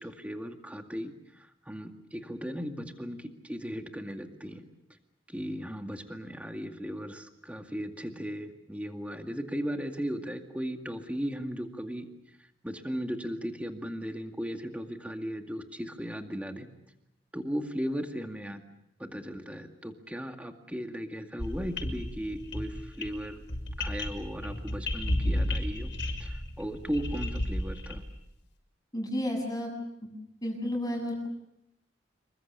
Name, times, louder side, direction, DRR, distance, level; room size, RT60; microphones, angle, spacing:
voice 1, 0.0-4.6 5.3-12.1 12.6-16.7 17.3-18.6 19.0-23.4 23.8-25.9 26.2-28.0, equal, 5° right, 4 dB, 2.2 m, -37 dB
sound 1, 21.4-28.1, left 1 dB, 70° left, 6.0 m, -33 dB
voice 2, 28.9-29.7 30.4-31.3, left 1 dB, 20° left, 2 dB, 7.6 m, -31 dB
27.5 x 23.5 x 6.9 m, 0.83 s
head